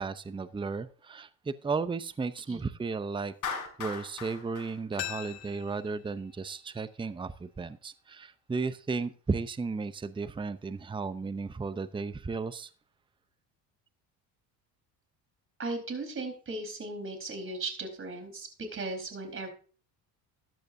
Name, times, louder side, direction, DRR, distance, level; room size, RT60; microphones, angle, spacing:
voice 1, 0.0-3.3 3.8-12.7, right 4 dB, 10° right, 0.7 m, -34 dB
Clapping, 3.4-5.7, left 6 dB, 50° left, 6.1 m, -39 dB
sound 1, 5.0-7.8 8.1-8.2, left 13 dB, 70° left, 1.7 m, -44 dB
voice 2, 15.6-19.5, right 2 dB, 30° right, 4.3 m, -37 dB
13.5 x 10.5 x 2.7 m
supercardioid pair, 85°, 41 cm